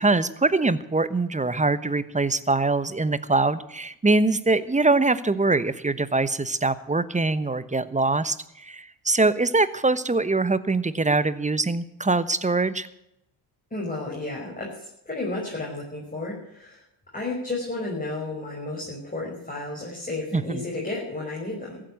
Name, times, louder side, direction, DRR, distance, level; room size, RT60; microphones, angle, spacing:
voice 1, 0.0-12.9 20.3-20.6, right 3 dB, 15° right, 15 dB, 1.0 m, -23 dB
voice 2, 13.7-16.8 17.1-21.8, left 2 dB, 15° left, -3 dB, 5.7 m, -32 dB
15.0 x 9.0 x 8.5 m, 0.81 s
supercardioid pair, 60°, 49 cm